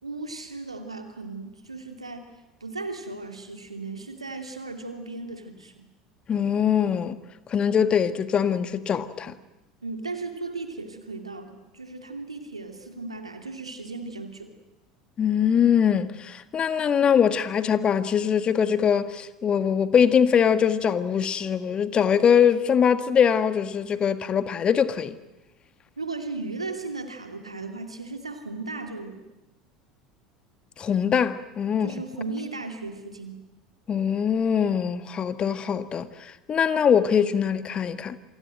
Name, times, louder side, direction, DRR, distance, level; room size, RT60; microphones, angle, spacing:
voice 1, 0.0-2.3 2.6-5.9 9.8-14.5 26.0-29.2 31.8-33.4, right 3 dB, 85° right, 2.7 m, -36 dB
voice 2, 6.3-7.2 7.5-9.3 15.2-25.1 30.8-31.9 33.9-38.2, left 7 dB, 30° left, 1.6 m, -22 dB
28.0 x 24.5 x 7.8 m
figure-of-eight pair, 70°, 3 cm